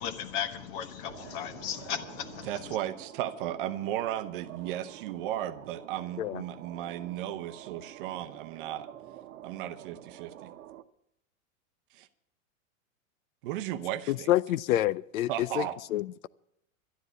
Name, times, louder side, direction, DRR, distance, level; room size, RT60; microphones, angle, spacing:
voice 1, 0.0-2.8, left 8 dB, 40° left, 1.4 m, -36 dB
sound 1, 1.1-10.8, right 12 dB, 80° right, 1.0 m, -48 dB
voice 2, 2.4-8.9 9.4-10.5 11.9-12.1 13.4-14.3 15.3-15.8, right 12 dB, 40° right, 0.8 m, -35 dB
voice 3, 14.1-16.3, left 13 dB, 80° left, 0.6 m, -28 dB
12.5 x 9.9 x 8.0 m
supercardioid pair, 160°, 41 cm